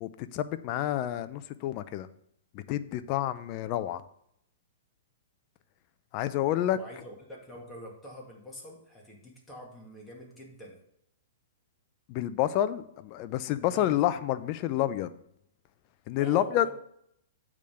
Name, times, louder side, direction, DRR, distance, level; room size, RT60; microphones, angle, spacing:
voice 1, 0.0-2.1 2.5-4.0 6.1-6.8 12.1-15.1 16.1-16.7, left 12 dB, 40° left, 13 dB, 0.5 m, -29 dB
voice 2, 6.7-10.8 13.6-14.0 16.2-16.7, right 1 dB, 10° left, -3 dB, 2.1 m, -45 dB
8.4 x 3.6 x 6.4 m, 0.73 s
hypercardioid pair, 130°, 0 cm